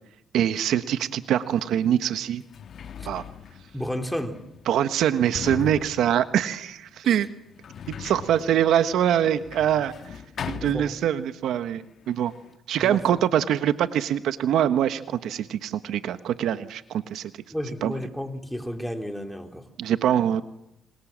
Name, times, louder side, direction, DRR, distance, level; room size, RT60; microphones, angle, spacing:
voice 1, 0.3-2.4 3.0-3.2 4.7-7.3 7.9-9.9 10.5-12.3 12.7-17.3 17.8-17.9 19.8-20.4, right 10 dB, 80° right, 11 dB, 1.3 m, -24 dB
Sliding door, 1.6-1.7 2.3-11.5 11.7-12.6, left 8 dB, 60° left, 1.4 m, -40 dB
voice 2, 3.7-4.4 7.0-7.2 10.7-10.9 12.8-13.0 17.5-19.7, equal, ahead, 5 dB, 3.8 m, -32 dB
30.0 x 26.0 x 7.5 m, 0.85 s
cardioid pair, 90°, 0 cm